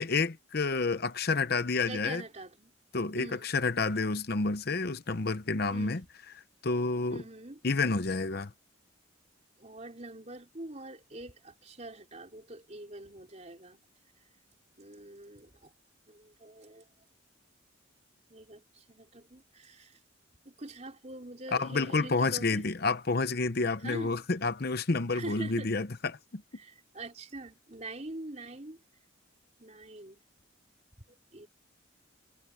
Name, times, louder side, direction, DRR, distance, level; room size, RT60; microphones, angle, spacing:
voice 1, 0.0-2.2 2.9-6.0 6.6-7.2 7.6-8.5 21.5-25.9 26.3-26.4, left 3 dB, 55° left, 0.8 m, -29 dB
voice 2, 1.8-2.7 3.1-3.5 5.7-6.1 7.1-7.6 9.6-13.8 14.8-15.7 16.1-16.9 18.3-20.0 20.4-22.6 23.8-24.2 25.1-25.7 26.6-28.8 29.6-30.2 31.3-31.5, right 2 dB, 35° right, 3.9 m, -44 dB
head